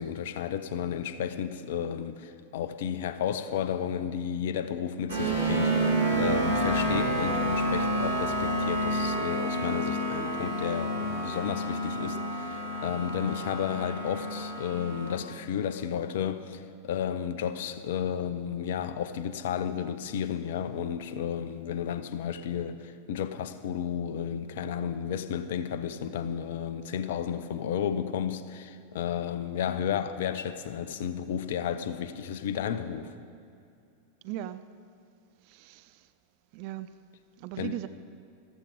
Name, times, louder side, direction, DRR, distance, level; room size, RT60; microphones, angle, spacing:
voice 1, 0.0-33.1 37.6-37.7, left 8 dB, 55° left, 0.7 m, -32 dB
sound 1, 5.1-15.2, right 1 dB, 65° right, 2.5 m, -29 dB
voice 2, 34.2-34.6 35.5-36.0 36.5-36.9 37.4-37.9, right 13 dB, 45° right, 0.6 m, -38 dB
14.0 x 13.5 x 5.1 m
figure-of-eight pair, 90°, 0 cm